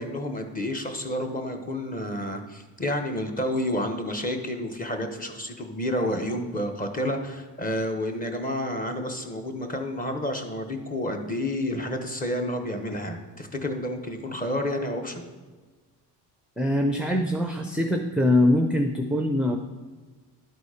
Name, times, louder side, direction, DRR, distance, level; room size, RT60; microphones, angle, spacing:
voice 1, 0.0-15.2, left 1 dB, 20° left, 4 dB, 1.0 m, -30 dB
voice 2, 16.6-19.6, left 1 dB, 5° right, 4 dB, 0.4 m, -23 dB
11.5 x 4.1 x 4.9 m, 1.3 s
cardioid pair, 110°, 42 cm